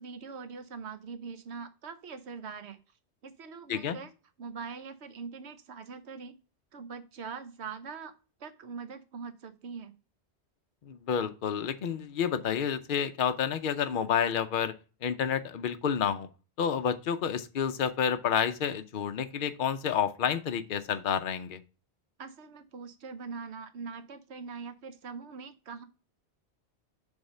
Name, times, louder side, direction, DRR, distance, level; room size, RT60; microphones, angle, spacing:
voice 1, 0.0-2.8 3.2-4.1 4.4-6.3 6.7-8.1 8.4-9.9 22.2-25.8, right 5 dB, 75° right, 10 dB, 1.1 m, -42 dB
voice 2, 10.8-14.7 15.0-16.3 16.6-21.6, left 8 dB, 55° left, 9 dB, 0.7 m, -29 dB
7.1 x 3.5 x 5.4 m, 0.35 s
omnidirectional pair, 1.1 m